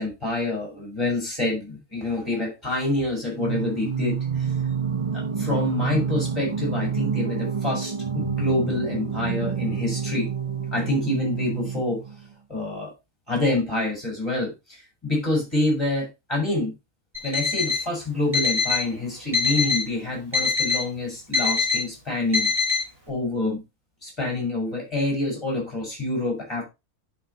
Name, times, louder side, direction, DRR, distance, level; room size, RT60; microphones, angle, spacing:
voice 1, 0.0-4.5 5.1-10.3 10.7-12.0 12.5-12.9 13.3-16.7 17.2-22.5 23.1-23.6 24.0-26.6, left 2 dB, 15° left, -3 dB, 5.8 m, -27 dB
Singing, 3.3-12.3, right 6 dB, 55° right, 0.3 m, -28 dB
Alarm, 17.1-17.8 18.3-18.9 19.3-19.9 20.3-20.9 21.3-21.8 22.3-22.8, left 5 dB, 15° right, 2.9 m, -23 dB
11.0 x 4.6 x 4.1 m, 0.24 s
omnidirectional pair, 1.7 m